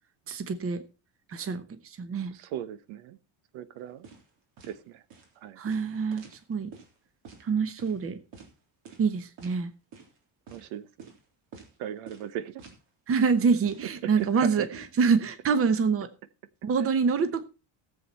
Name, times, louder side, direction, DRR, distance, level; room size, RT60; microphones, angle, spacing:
voice 1, 0.3-0.8 1.3-1.6 2.0-2.3 5.6-6.2 6.5-6.7 7.4-8.2 9.0-9.7 13.1-16.1 16.6-17.4, right 5 dB, 30° right, 12 dB, 1.0 m, -26 dB
voice 2, 2.3-3.2 3.5-4.0 4.7-5.0 5.4-5.6 10.5-11.1 11.8-12.6 14.0-14.7, right 11 dB, 80° right, 15 dB, 1.1 m, -37 dB
sound 1, 4.0-4.3 4.6-4.8 5.1-5.3 5.7-6.9 7.2-7.4 7.8-8.0 8.3-8.5 8.8-9.1 9.4-9.6 9.9-10.2 10.5-10.6 11.0-11.2 11.5-11.8 12.1-12.2 12.6-12.8 13.1-13.3 13.6-14.9, right 5 dB, 65° right, 3.5 m, -48 dB
17.0 x 7.7 x 4.2 m, 0.32 s
cardioid pair, 165°, 47 cm